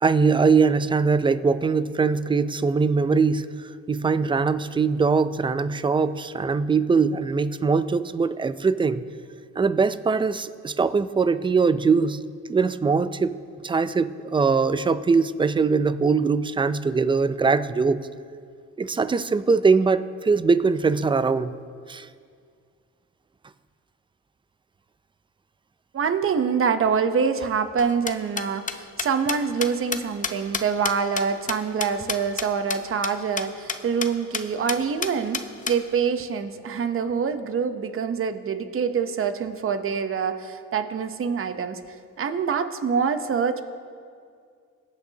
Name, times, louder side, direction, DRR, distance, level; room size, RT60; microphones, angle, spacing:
voice 1, 0.0-9.0 9.6-12.2 12.5-13.4 13.6-18.1 18.8-21.5 21.9-22.1, right 4 dB, 15° right, 14 dB, 0.4 m, -22 dB
voice 2, 25.9-41.8 42.2-43.6, right 6 dB, 45° right, 9 dB, 0.8 m, -25 dB
sound 1, 27.8-32.5 32.7-32.8 33.0-33.1 33.4-33.5 33.7-34.1 34.3-34.4 34.7-35.8, left 5 dB, 25° left, 0.6 m, -29 dB
22.0 x 8.3 x 2.8 m, 2.2 s
cardioid pair, 90°, 30 cm